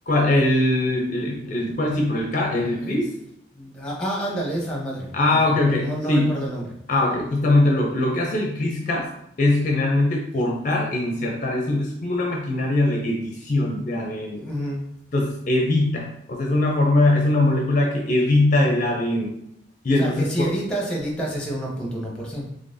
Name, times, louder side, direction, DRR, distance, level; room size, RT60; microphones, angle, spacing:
voice 1, 0.1-3.1 5.1-6.5 6.9-9.1 9.4-14.5 15.1-19.3 19.8-20.5, left 2 dB, 40° left, 0 dB, 0.5 m, -21 dB
voice 2, 3.5-5.5 5.8-6.7 14.4-14.8 20.0-22.5, right 1 dB, 5° left, -2 dB, 0.8 m, -29 dB
3.8 x 3.3 x 2.6 m, 0.76 s
head